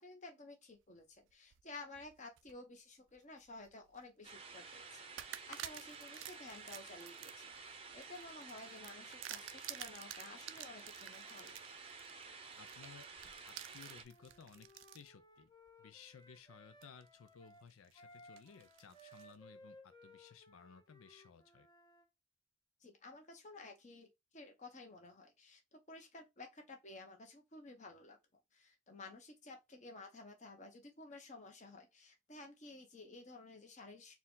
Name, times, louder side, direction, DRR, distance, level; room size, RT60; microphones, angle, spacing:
voice 1, 0.0-11.5 22.8-28.2 28.5-34.1, left 2 dB, 35° left, 0.9 m, -54 dB
sound 1, 1.3-2.5 3.1-4.0 4.5-4.6 5.2-15.1 15.7-15.8 16.8-17.3 17.7-19.4, right 12 dB, 70° right, 0.4 m, -51 dB
sound 2, 4.2-14.0, right 4 dB, 25° right, 0.6 m, -52 dB
voice 2, 12.4-13.1 13.5-15.5 15.8-21.7, left 6 dB, 85° left, 0.4 m, -58 dB
Wind instrument woodwind instrument, 14.1-22.1, left 1 dB, 20° left, 0.6 m, -61 dB
4.4 x 2.3 x 3.7 m
head